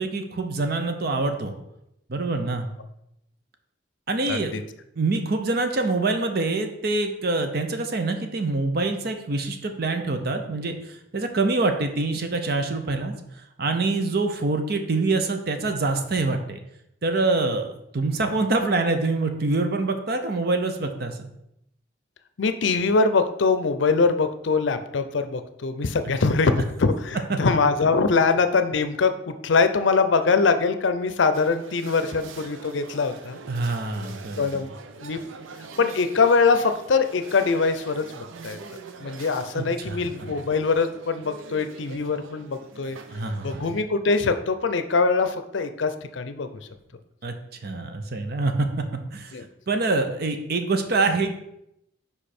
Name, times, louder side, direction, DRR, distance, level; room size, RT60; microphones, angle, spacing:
voice 1, 0.0-1.6 2.1-2.7 4.1-4.6 5.0-13.1 13.6-16.6 17.0-21.3 33.5-34.5 39.6-40.0 43.1-43.6 47.2-47.4 47.6-48.8 49.1-49.3 49.7-51.3, right 3 dB, 55° right, 6 dB, 0.7 m, -25 dB
voice 2, 4.3-4.6 22.4-33.4 34.4-34.7 35.0-35.2 35.8-38.6 39.0-43.0 43.4-46.5 49.3-49.4, left 4 dB, 75° left, 10 dB, 0.5 m, -23 dB
sound 1, 31.3-43.8, right 4 dB, 90° right, 0.6 m, -43 dB
5.1 x 5.0 x 4.3 m, 0.80 s
head